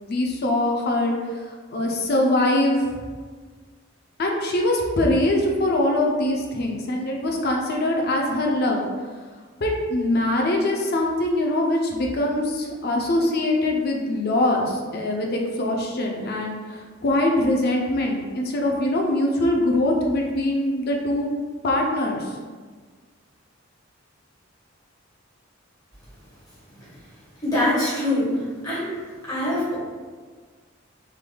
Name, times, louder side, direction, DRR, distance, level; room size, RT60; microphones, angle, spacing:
voice 1, 0.0-2.9 4.2-8.8 9.6-21.3 21.6-22.3, left 1 dB, 50° left, 0 dB, 0.5 m, -23 dB
voice 2, 27.4-28.9 29.2-29.8, left 1 dB, 20° left, -9 dB, 1.1 m, -24 dB
3.3 x 3.3 x 2.2 m, 1.5 s
head